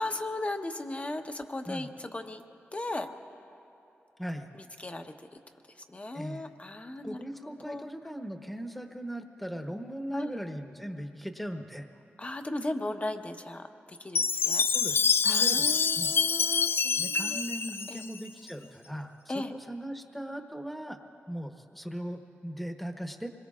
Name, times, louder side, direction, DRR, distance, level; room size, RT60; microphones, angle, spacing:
voice 1, 0.0-2.4 2.7-3.1 4.5-5.1 5.9-7.2 7.6-7.9 10.1-10.4 12.2-14.7 15.2-17.4 17.9-18.0 19.3-19.5, left 2 dB, 30° left, 5 dB, 1.0 m, -36 dB
voice 2, 6.1-6.5 7.0-11.9 14.7-16.2 17.0-21.0 21.3-23.3, equal, ahead, 5 dB, 1.1 m, -39 dB
Chime, 14.2-18.5, left 5 dB, 55° left, 0.4 m, -26 dB
25.5 x 22.0 x 2.5 m, 2.9 s
cardioid pair, 55°, 4 cm